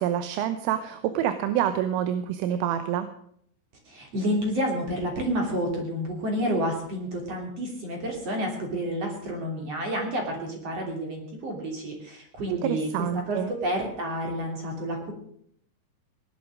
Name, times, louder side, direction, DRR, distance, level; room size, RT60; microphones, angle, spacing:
voice 1, 0.0-3.1 12.5-13.5, right 10 dB, 85° right, 10 dB, 3.5 m, -27 dB
voice 2, 3.9-15.1, equal, 35° right, 1 dB, 3.4 m, -30 dB
18.0 x 11.5 x 6.4 m, 0.68 s
omnidirectional pair, 5.8 m